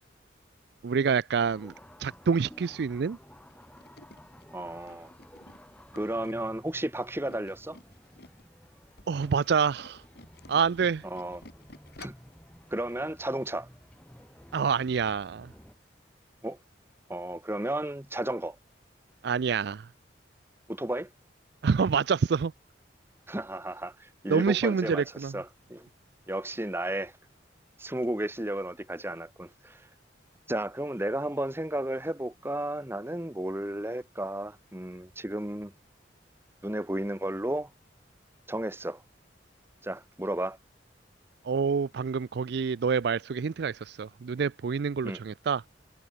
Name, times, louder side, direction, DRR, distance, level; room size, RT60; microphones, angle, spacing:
voice 1, 0.8-1.7 2.0-3.2 9.1-10.0 10.5-11.0 14.5-15.5 19.2-19.9 21.6-22.5 24.3-25.3 41.4-45.6, right 6 dB, 60° right, 0.4 m, -27 dB
sound 1, 1.4-15.7, equal, 5° left, 1.9 m, -54 dB
Tools, 3.5-8.5 8.8-12.4 12.8-13.0 13.3-13.4, left 2 dB, 60° left, 7.2 m, -53 dB
voice 2, 4.5-5.1 5.9-7.8 11.1-11.4 12.0-12.2 12.7-13.7 16.4-16.6 17.1-18.6 20.7-21.1 23.3-25.0 25.3-25.9 26.3-27.1 27.8-29.8 30.5-35.7 36.6-37.7 38.5-39.0 39.8-40.6 45.0-45.2, right 1 dB, 15° right, 1.2 m, -33 dB
head